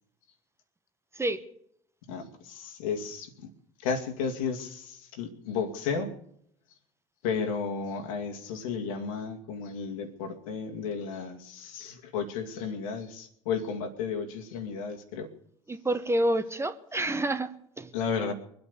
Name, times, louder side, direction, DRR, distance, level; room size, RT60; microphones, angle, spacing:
voice 1, 2.1-3.3 3.8-6.1 7.2-15.3 17.9-18.3, left 5 dB, 70° left, 2.3 m, -33 dB
voice 2, 15.7-17.9, right 1 dB, 15° right, 1.3 m, -28 dB
23.0 x 8.8 x 7.0 m
figure-of-eight pair, 65°, 18 cm